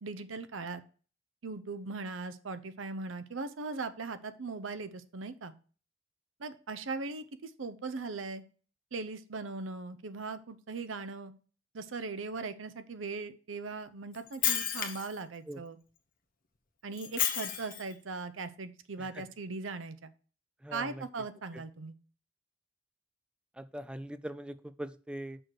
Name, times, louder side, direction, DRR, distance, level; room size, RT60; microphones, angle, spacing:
voice 1, 0.0-0.8 1.4-5.5 6.4-8.4 8.9-11.3 11.7-15.8 16.8-20.1 20.7-22.0, right 3 dB, 85° right, 11 dB, 0.7 m, -39 dB
Shatter, 14.1-15.2 17.0-17.9, left 10 dB, 50° left, 1.1 m, -31 dB
voice 2, 20.6-21.0 23.6-25.4, right 1 dB, 5° right, 13 dB, 0.4 m, -41 dB
6.3 x 4.7 x 6.5 m, 0.40 s
head